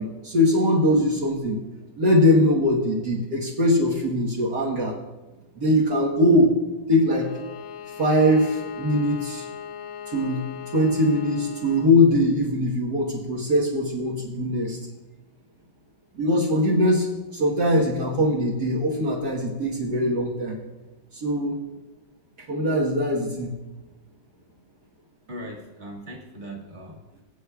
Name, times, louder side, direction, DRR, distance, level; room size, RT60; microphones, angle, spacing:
voice 1, 0.0-1.6 2.0-5.0 5.6-6.5 6.9-7.3 8.0-9.5 10.1-10.5 10.7-14.8 16.2-20.6 21.1-21.6 22.5-23.5, left 1 dB, 60° right, -6 dB, 1.8 m, -21 dB
Bowed string instrument, 7.0-12.0, left 8 dB, 70° left, 0.9 m, -38 dB
voice 2, 25.3-27.2, right 1 dB, 35° right, -2 dB, 2.1 m, -39 dB
22.0 x 8.2 x 2.3 m, 1.1 s
omnidirectional pair, 2.0 m